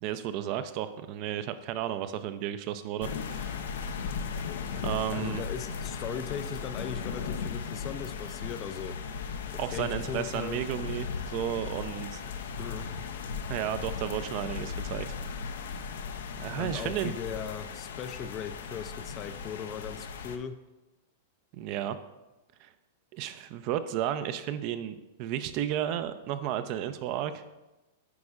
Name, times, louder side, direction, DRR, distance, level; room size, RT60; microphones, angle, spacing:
voice 1, 0.0-3.5 4.8-5.4 9.6-12.2 13.5-15.1 16.4-17.1 21.5-22.0 22.6-22.7 23.1-27.4, right 11 dB, 50° right, 11 dB, 0.4 m, -33 dB
sound 1, 3.0-20.4, left 6 dB, 80° left, 0.5 m, -37 dB
voice 2, 5.1-8.9 9.5-10.6 12.6-12.9 16.6-20.6, left 8 dB, 35° left, 11 dB, 0.4 m, -38 dB
9.4 x 5.2 x 2.4 m, 1.0 s
hypercardioid pair, 130°, 0 cm